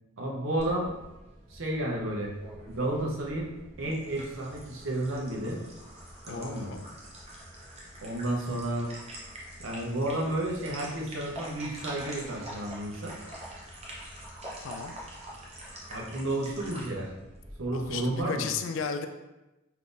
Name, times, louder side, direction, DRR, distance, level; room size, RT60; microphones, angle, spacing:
voice 1, 0.2-0.9 1.5-2.4 2.7-3.5 3.8-5.6 6.3-6.7 8.0-8.9 9.6-13.1 15.9-17.1 17.6-18.5, right 1 dB, 80° right, -2 dB, 0.7 m, -31 dB
sound 1, 0.6-18.2, right 1 dB, 30° right, 0.7 m, -45 dB
voice 2, 6.3-6.8 14.6-14.9 17.7-19.1, left 5 dB, 70° left, 7 dB, 0.3 m, -34 dB
3.7 x 2.7 x 2.5 m, 1.0 s
head